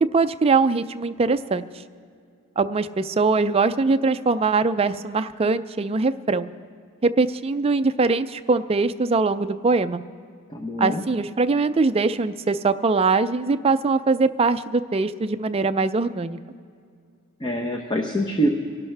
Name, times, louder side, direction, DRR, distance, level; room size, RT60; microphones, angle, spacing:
voice 1, 0.0-1.7 2.6-6.5 7.0-10.0 10.8-16.4, right 4 dB, 25° right, 11 dB, 0.4 m, -22 dB
voice 2, 10.5-11.0 17.4-18.5, equal, 20° left, 2 dB, 0.8 m, -24 dB
24.5 x 12.0 x 3.4 m, 2.2 s
head